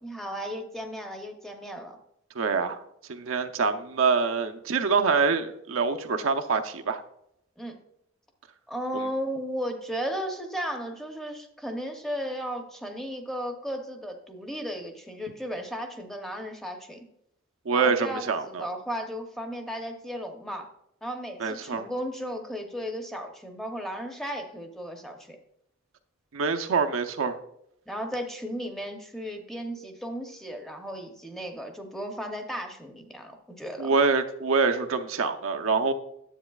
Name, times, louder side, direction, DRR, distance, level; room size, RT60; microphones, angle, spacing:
voice 1, 0.0-2.0 7.6-7.8 8.7-17.0 17.7-20.7 21.0-25.4 27.9-33.9, equal, ahead, 4 dB, 0.7 m, -35 dB
voice 2, 2.3-2.8 3.1-7.0 17.7-18.7 21.4-21.9 26.3-27.4 33.8-35.9, right 4 dB, 80° right, 7 dB, 0.6 m, -25 dB
10.0 x 7.7 x 2.3 m, 0.75 s
head